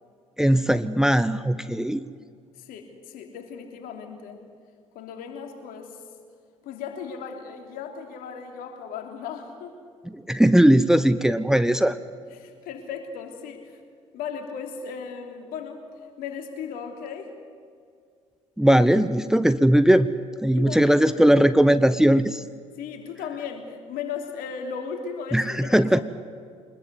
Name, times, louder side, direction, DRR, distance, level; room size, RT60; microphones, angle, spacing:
voice 1, 0.4-2.0 10.0-12.0 18.6-20.1 20.4-22.4 25.3-26.0, right 1 dB, 5° right, 13 dB, 0.9 m, -19 dB
voice 2, 2.6-4.4 4.9-6.0 6.6-9.7 12.3-13.8 14.1-15.8 16.2-17.3 20.5-21.0 21.3-21.4 22.8-26.0, left 6 dB, 65° left, 4 dB, 3.4 m, -36 dB
24.5 x 21.0 x 8.2 m, 2.2 s
figure-of-eight pair, 50°, 16 cm